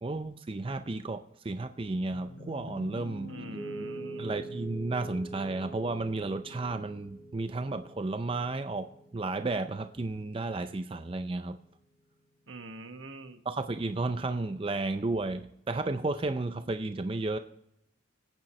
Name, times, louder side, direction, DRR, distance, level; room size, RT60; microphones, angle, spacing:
voice 1, 0.0-3.3 4.2-11.6 13.5-17.4, right 2 dB, 25° right, 0.4 m, -33 dB
Piano, 2.1-10.2, right 1 dB, 75° left, 3.9 m, -44 dB
voice 2, 3.3-4.3 12.5-13.4, right 2 dB, 80° right, 1.1 m, -44 dB
27.0 x 9.1 x 3.2 m
head